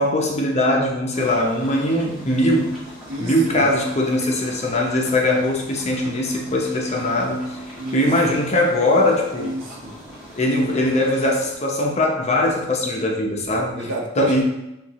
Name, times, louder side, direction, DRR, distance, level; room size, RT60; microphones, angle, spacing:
voice 1, 0.0-2.8 3.2-7.6 7.9-9.5 10.4-13.8 14.2-14.4, left 1 dB, 35° left, 0 dB, 0.7 m, -21 dB
sound 1, 1.1-11.5, equal, ahead, 1.3 m, -41 dB
voice 2, 3.1-3.6 7.8-8.3 9.3-10.0 13.8-14.4, right 1 dB, 75° right, 1 dB, 0.8 m, -29 dB
6.3 x 2.5 x 3.0 m, 0.91 s
head